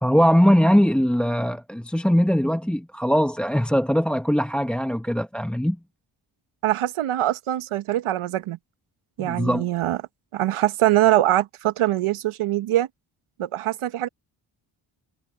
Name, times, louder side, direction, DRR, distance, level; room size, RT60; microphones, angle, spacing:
voice 1, 0.0-5.8 9.2-9.7, equal, ahead, 0.9 m, -21 dB
voice 2, 6.6-8.6 9.2-10.0 10.3-12.9 13.4-14.1, right 14 dB, 80° right, 1.1 m, -23 dB
cardioid pair, 65°, 50 cm